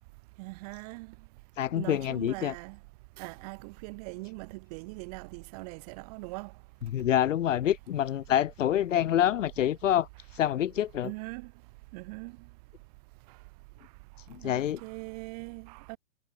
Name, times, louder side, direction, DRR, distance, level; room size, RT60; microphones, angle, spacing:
voice 1, 0.4-1.1 1.8-2.8 3.2-6.5 11.0-11.5 11.9-12.3 13.3-13.4 13.8-13.9 14.4-16.0, right 26 dB, 30° right, 1.6 m, -41 dB
voice 2, 1.6-2.5 6.9-10.1 10.3-11.1 14.3-14.8, left 11 dB, 65° left, 1.6 m, -27 dB
hypercardioid pair, 165°, 41 cm